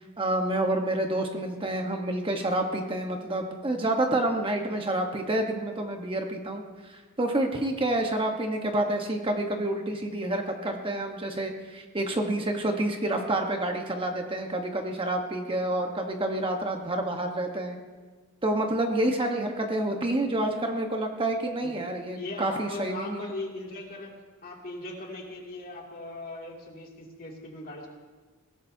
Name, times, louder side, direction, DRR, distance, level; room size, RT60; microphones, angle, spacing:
voice 1, 0.2-17.8 18.4-23.3, right 1 dB, 25° right, 3 dB, 1.2 m, -28 dB
voice 2, 22.2-24.1 24.4-27.9, left 2 dB, 45° left, -1 dB, 2.6 m, -39 dB
21.5 x 17.5 x 2.8 m, 1.4 s
head